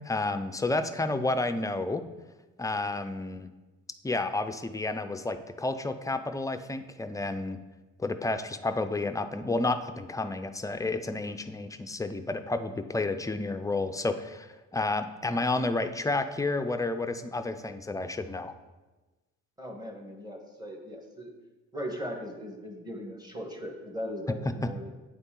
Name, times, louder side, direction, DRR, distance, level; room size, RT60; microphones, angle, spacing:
voice 1, 0.0-2.0 2.6-3.5 4.0-7.6 8.0-18.5, left 2 dB, 10° left, 9 dB, 0.4 m, -31 dB
voice 2, 19.6-21.3 21.7-24.9, equal, 15° right, 1 dB, 1.3 m, -38 dB
9.1 x 4.0 x 3.7 m, 1.2 s
cardioid pair, 90°, 30 cm